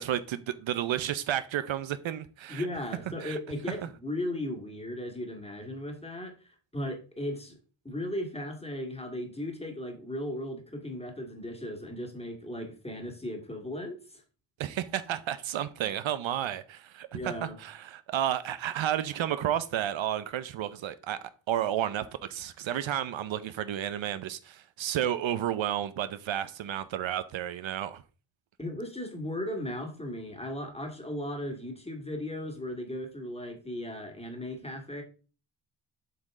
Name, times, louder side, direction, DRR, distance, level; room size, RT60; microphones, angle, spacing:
voice 1, 0.0-2.7 3.2-3.4 3.7-3.8 14.6-21.2 21.5-28.0, right 11 dB, 65° right, 0.7 m, -32 dB
voice 2, 2.5-7.6 7.8-14.2 17.1-17.6 28.6-35.0, left 1 dB, 10° left, 2.0 m, -36 dB
7.9 x 5.2 x 3.6 m
cardioid pair, 100°, 49 cm